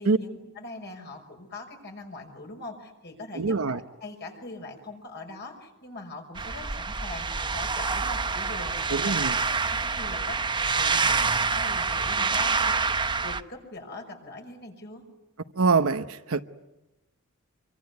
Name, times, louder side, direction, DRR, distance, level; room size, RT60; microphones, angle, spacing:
voice 1, 0.0-10.4 10.8-15.0, left 2 dB, 50° left, 5.7 m, -42 dB
voice 2, 3.3-3.8 8.9-9.4 15.6-16.4, right 4 dB, 70° right, 0.9 m, -24 dB
sound 1, 6.3-13.4, right 4 dB, 20° right, 0.9 m, -27 dB
25.5 x 24.0 x 9.5 m
head